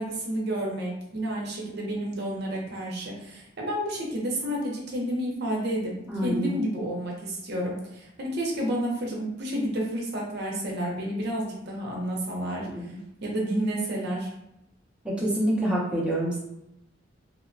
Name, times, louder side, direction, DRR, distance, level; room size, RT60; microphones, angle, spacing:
voice 1, 0.0-5.9 6.2-12.9 13.2-14.3, right 1 dB, 60° right, -2 dB, 0.6 m, -30 dB
voice 2, 6.1-6.6 12.8-12.9 15.0-16.4, right 1 dB, 5° right, -7 dB, 0.6 m, -26 dB
2.9 x 2.1 x 2.5 m, 0.85 s
head